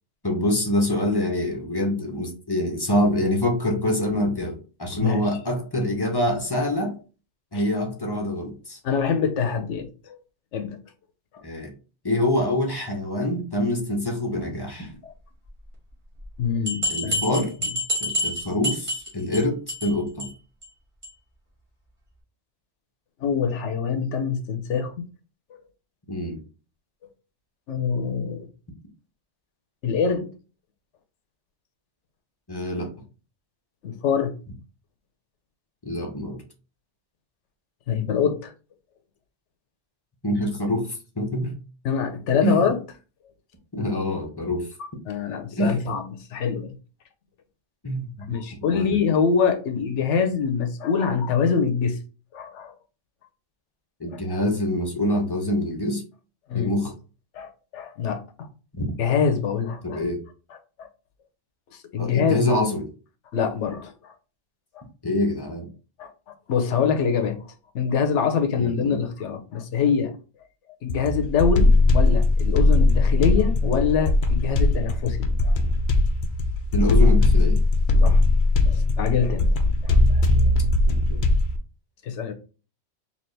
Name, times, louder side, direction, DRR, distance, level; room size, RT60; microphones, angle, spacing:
voice 1, 0.2-6.9 7.5-8.8 11.4-11.7 12.0-14.9 16.9-17.5 18.0-20.3 26.1-26.4 32.5-32.9 35.8-36.4 40.2-41.5 42.4-42.7 43.7-44.7 45.6-45.8 47.8-48.3 48.7-49.0 54.0-56.0 56.5-56.9 58.7-58.9 59.8-60.2 62.0-62.8 65.0-65.7 68.6-69.0 76.7-77.6 80.9-81.2, left 1 dB, 25° left, 0.8 m, -25 dB
voice 2, 8.8-10.2 10.5-10.8 15.0-15.1 16.4-17.4 23.2-25.1 27.7-28.5 29.8-30.3 33.8-34.3 37.9-38.5 41.8-42.8 45.1-46.8 48.3-52.0 52.3-52.8 54.1-54.2 56.5-56.8 57.3-58.2 59.0-60.0 60.5-60.9 61.7-62.4 63.3-64.1 64.7-64.8 66.0-66.1 66.5-67.4 67.7-70.2 70.8-75.6 78.0-78.2 78.7-79.6 79.8-80.2 82.0-82.3, left 6 dB, 85° left, 1.0 m, -25 dB
sound 1, 16.2-16.3 16.7-19.4 19.7-19.9 20.2-20.3 20.6-20.7 21.0-21.1, left 1 dB, 25° right, 1.9 m, -27 dB
sound 2, 70.9-81.6, left 2 dB, 55° left, 0.7 m, -19 dB
4.2 x 2.9 x 3.2 m
omnidirectional pair, 1.2 m